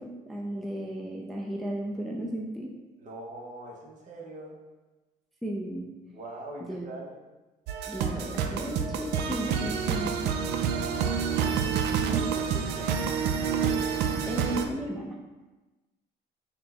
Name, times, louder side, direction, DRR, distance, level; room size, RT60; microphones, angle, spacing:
voice 1, 0.0-2.7 5.4-5.9 6.7-6.9 7.9-10.2 12.1-12.4 14.3-15.2, right 1 dB, ahead, -2 dB, 0.4 m, -34 dB
voice 2, 3.0-4.6 6.1-7.1 12.1-12.9, right 2 dB, 45° right, -2 dB, 0.9 m, -42 dB
sound 1, 7.7-14.7, right 6 dB, 80° right, 0.4 m, -28 dB
4.4 x 2.2 x 4.1 m, 1.2 s
cardioid pair, 110°, 17 cm